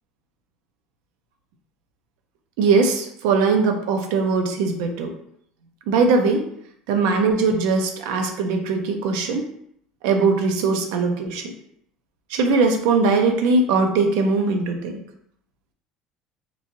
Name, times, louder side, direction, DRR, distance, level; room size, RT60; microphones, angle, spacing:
voice 1, 2.6-5.1 5.9-6.4 6.9-9.4 10.0-11.5 12.3-15.0, right 4 dB, 85° right, 4 dB, 0.5 m, -20 dB
3.1 x 2.5 x 2.6 m, 0.70 s
supercardioid pair, 110°, 2 cm